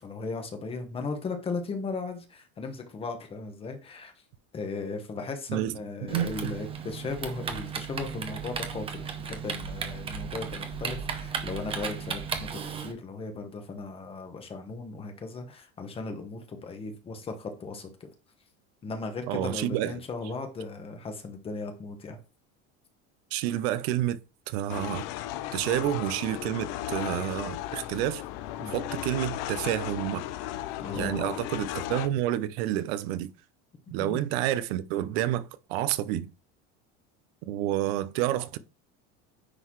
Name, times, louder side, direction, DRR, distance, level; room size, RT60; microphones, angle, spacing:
voice 1, 0.0-4.1 4.5-18.1 18.8-22.2 28.6-28.7 30.8-31.3 33.9-34.2, left 4 dB, 20° left, 1.0 m, -37 dB
Typing, 6.1-12.9, right 6 dB, 20° right, 0.7 m, -35 dB
voice 2, 6.1-6.6 19.3-19.9 23.3-24.2 24.5-25.0 25.5-28.2 28.7-30.2 30.9-33.3 33.9-36.3 37.4-38.6, right 13 dB, 80° right, 0.7 m, -29 dB
sound 1, 24.7-32.1, left 13 dB, 60° left, 0.6 m, -35 dB
9.8 x 3.9 x 3.1 m
cardioid pair, 175°, 31 cm